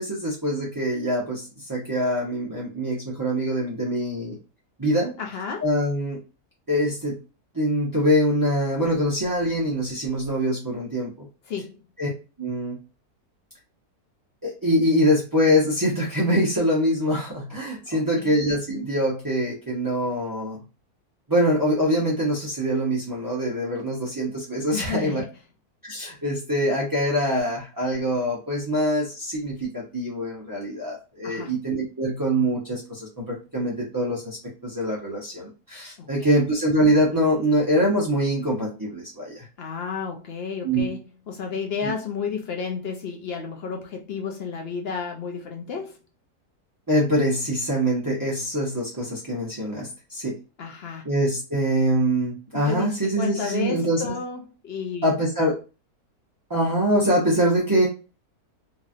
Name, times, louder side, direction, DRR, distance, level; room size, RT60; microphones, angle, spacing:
voice 1, 0.0-4.4 4.8-5.1 5.6-6.2 6.7-7.2 7.5-11.3 12.0-12.1 12.4-12.8 14.4-20.6 21.3-25.2 25.8-34.4 34.6-39.4 40.6-40.9 41.8-41.9 46.9-50.3 51.0-54.1 55.0-55.5 56.5-57.9, equal, 20° right, -5 dB, 0.5 m, -24 dB
voice 2, 5.2-5.6 11.5-11.8 17.9-18.3 24.7-25.3 31.2-31.5 36.0-36.1 39.6-46.0 50.6-51.0 52.5-55.1, left 6 dB, 65° left, 2 dB, 0.6 m, -32 dB
3.0 x 2.7 x 2.4 m, 0.31 s
omnidirectional pair, 1.6 m